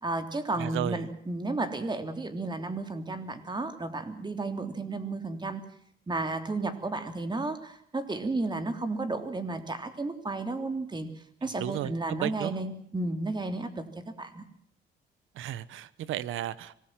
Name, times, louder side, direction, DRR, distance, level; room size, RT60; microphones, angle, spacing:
voice 1, 0.0-5.6 6.1-11.1 11.4-13.8 14.2-14.4, right 2 dB, 20° right, 7 dB, 3.3 m, -33 dB
voice 2, 0.6-1.0 11.6-11.9 12.2-12.5 15.3-16.7, right 12 dB, 85° right, 17 dB, 1.2 m, -33 dB
25.5 x 19.5 x 7.6 m, 0.67 s
cardioid pair, 90°, 20 cm